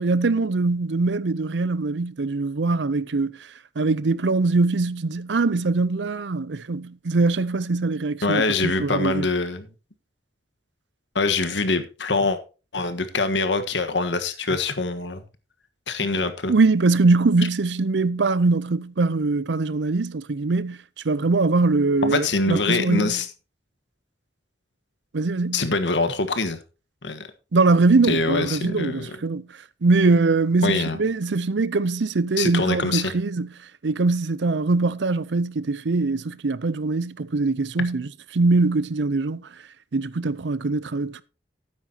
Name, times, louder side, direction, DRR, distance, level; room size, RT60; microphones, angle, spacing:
voice 1, 0.0-9.3 16.5-23.2 25.1-25.7 27.5-39.5 39.9-41.2, right 3 dB, 80° right, 0.6 m, -22 dB
voice 2, 8.2-9.7 11.1-12.4 12.7-15.2 15.9-16.5 22.0-23.3 25.5-26.6 27.0-27.3 28.1-29.1 30.6-31.0 32.4-33.1, left 3 dB, 90° left, 1.5 m, -24 dB
12.5 x 9.6 x 2.9 m
head